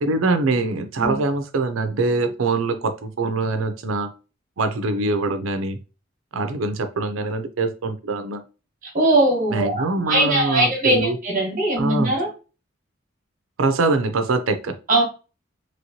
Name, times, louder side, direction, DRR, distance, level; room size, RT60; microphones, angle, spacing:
voice 1, 0.0-4.1 4.6-5.8 6.3-8.4 9.5-11.2 11.8-12.1 13.6-14.7, right 3 dB, 80° right, 9 dB, 0.5 m, -23 dB
voice 2, 8.9-12.3 14.9-15.0, right 1 dB, 45° right, 0 dB, 1.1 m, -20 dB
3.0 x 2.9 x 2.8 m, 0.33 s
head